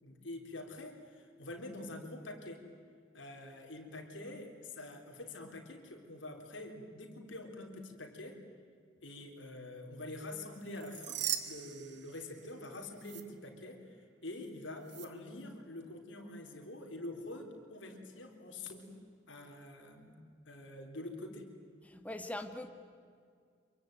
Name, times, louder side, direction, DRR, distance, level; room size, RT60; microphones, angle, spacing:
voice 1, 0.0-2.7 3.1-8.4 9.0-18.9 19.3-20.2 20.5-21.6, left 2 dB, 85° left, 3 dB, 4.0 m, -46 dB
sound 1, 10.6-12.6 13.0-13.2 14.8-15.1, right 10 dB, 65° right, 1.8 m, -40 dB
voice 2, 21.8-22.7, left 1 dB, 10° left, 6 dB, 1.9 m, -41 dB
27.0 x 23.5 x 9.2 m, 2.2 s
head